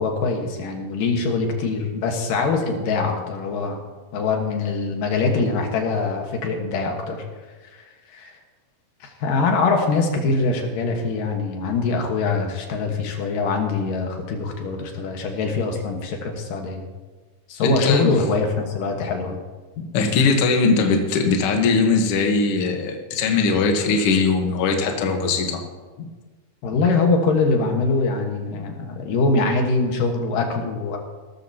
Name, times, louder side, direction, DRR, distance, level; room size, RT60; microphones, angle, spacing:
voice 1, 0.0-3.8 4.1-7.2 7.7-7.8 8.1-8.3 9.0-16.9 17.5-19.4 26.6-31.0, left 3 dB, 75° left, 2 dB, 3.0 m, -23 dB
voice 2, 17.6-18.2 19.9-25.6 26.0-26.1, left 4 dB, 60° left, 3 dB, 1.7 m, -20 dB
17.0 x 13.5 x 2.9 m, 1.4 s
omnidirectional pair, 4.0 m